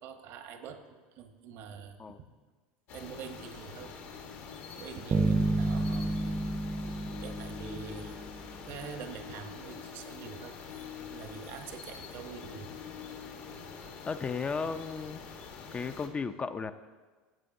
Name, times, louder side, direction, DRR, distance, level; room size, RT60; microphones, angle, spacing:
voice 1, 0.0-0.8 1.1-2.3 2.9-3.9 4.8-6.4 7.2-8.3 8.7-10.6 11.1-12.8, right 6 dB, 60° right, 7 dB, 1.0 m, -45 dB
sound 1, 2.9-16.1, left 5 dB, 65° left, 1.3 m, -46 dB
sound 2, 4.0-5.3 5.7-11.8 12.0-13.6, left 11 dB, 85° left, 1.2 m, -50 dB
sound 3, 5.1-8.5, right 2 dB, 30° right, 0.6 m, -30 dB
voice 2, 14.1-15.2 15.7-16.7, left 5 dB, 25° left, 10 dB, 0.5 m, -34 dB
15.0 x 8.3 x 2.7 m, 1.4 s
hypercardioid pair, 90°, 5 cm